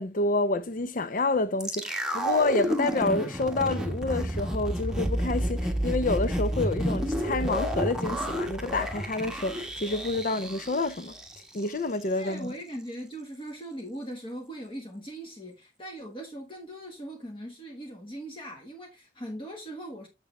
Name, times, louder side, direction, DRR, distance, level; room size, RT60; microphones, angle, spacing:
voice 1, 0.0-11.1 11.5-12.5, left 2 dB, 50° left, 0.6 m, -28 dB
sound 1, 1.6-11.7 12.0-12.1, equal, 5° right, 1.2 m, -30 dB
voice 2, 12.2-20.1, right 1 dB, 30° left, 1.5 m, -40 dB
6.8 x 6.7 x 3.2 m
head